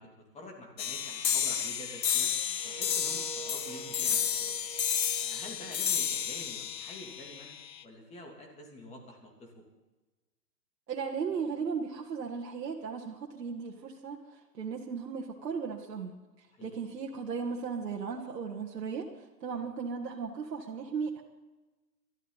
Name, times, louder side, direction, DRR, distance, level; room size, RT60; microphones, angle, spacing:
voice 1, 0.0-2.3 2.6-4.7 5.2-7.5 7.8-9.6 16.5-16.7 19.5-19.7, left 1 dB, 15° left, 1 dB, 2.8 m, -48 dB
sound 1, 0.8-7.8, left 8 dB, 80° left, 1.1 m, -31 dB
sound 2, 2.5-7.4, right 7 dB, 20° right, 0.5 m, -48 dB
voice 2, 10.9-14.2 14.5-16.2 16.6-19.1 19.4-21.2, right 5 dB, 75° right, 0 dB, 2.0 m, -36 dB
22.5 x 13.0 x 4.1 m, 1.1 s
hypercardioid pair, 135°, 49 cm